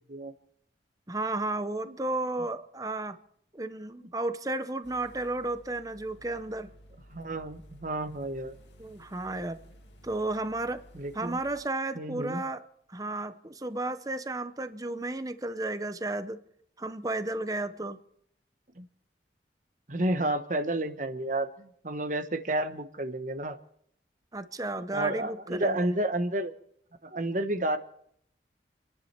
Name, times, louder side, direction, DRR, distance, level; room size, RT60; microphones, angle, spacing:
voice 1, 1.1-3.2 3.5-6.7 8.8-9.6 10.0-10.8 11.1-12.6 12.9-16.4 16.8-18.0 24.3-25.9, right 2 dB, 20° right, 10 dB, 0.8 m, -33 dB
sound 1, 4.8-11.6, equal, 80° left, 2.3 m, -54 dB
voice 2, 7.1-8.5 10.9-11.4 12.0-12.4 18.8-18.9 19.9-23.6 24.9-26.5 27.0-27.8, right 1 dB, 45° right, 9 dB, 1.1 m, -31 dB
29.5 x 10.5 x 4.4 m, 0.69 s
head